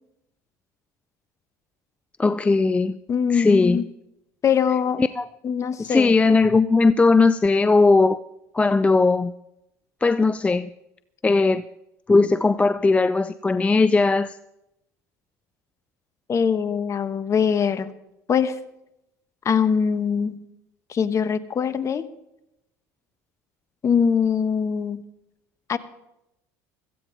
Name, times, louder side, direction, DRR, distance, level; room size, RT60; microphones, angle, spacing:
voice 1, 2.2-3.0 3.3-3.8 5.0-5.3 5.8-8.2 8.5-9.3 10.0-10.7 11.2-11.6 12.1-14.4, left 3 dB, 15° left, 14 dB, 0.4 m, -18 dB
voice 2, 3.1-3.9 4.4-5.0 5.4-6.1 16.3-17.9 18.3-18.6 19.4-20.4 20.9-22.0 23.8-25.0 25.7-25.8, left 7 dB, 35° left, 12 dB, 1.2 m, -22 dB
16.5 x 14.5 x 4.0 m, 0.85 s
supercardioid pair, 90°, 9 cm